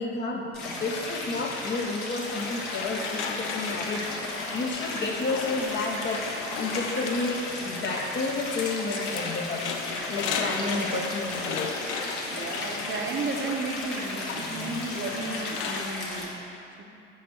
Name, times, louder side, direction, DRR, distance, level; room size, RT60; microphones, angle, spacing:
voice 1, 0.0-6.3 6.6-9.7 10.1-11.7, left 3 dB, 30° left, 1 dB, 0.9 m, -31 dB
Stream, 0.5-16.3, left 2 dB, 55° left, 1.4 m, -35 dB
sound 1, 2.4-15.9, left 5 dB, 70° left, 0.7 m, -37 dB
Tick-tock, 2.8-3.2 3.9-4.1 4.4-4.5 4.8-5.3 5.9-6.1 6.9-7.1 7.9-8.1 8.9-9.0 9.9-10.1 10.6-10.7 10.9-11.2 11.9-12.1 12.9-13.1 13.8-14.0 14.8-14.9, right 2 dB, 75° right, 1.5 m, -42 dB
voice 2, 10.6-11.0 12.3-16.8, right 3 dB, 30° right, 1 dB, 0.9 m, -34 dB
5.6 x 5.3 x 6.4 m, 2.6 s
figure-of-eight pair, 60°, 36 cm